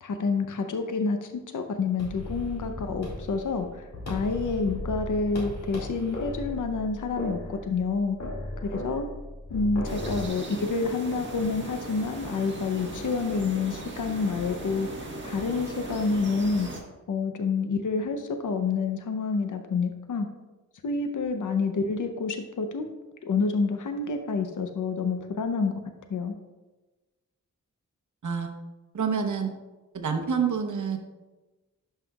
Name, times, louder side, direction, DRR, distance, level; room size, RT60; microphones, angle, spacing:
voice 1, 0.0-8.2 8.7-9.1 9.5-14.9 15.2-16.7 17.1-20.3 20.8-22.9 23.2-25.7 26.1-26.3, left 4 dB, 75° left, 6 dB, 0.7 m, -28 dB
sound 1, 2.0-10.3, left 1 dB, 55° left, 2.2 m, -36 dB
sound 2, 9.8-16.8, right 2 dB, 35° right, 1.2 m, -38 dB
voice 2, 28.9-29.5 29.9-31.0, right 6 dB, 70° right, 4 dB, 0.9 m, -27 dB
11.0 x 5.6 x 2.3 m, 1.1 s
wide cardioid pair, 120°, 31 cm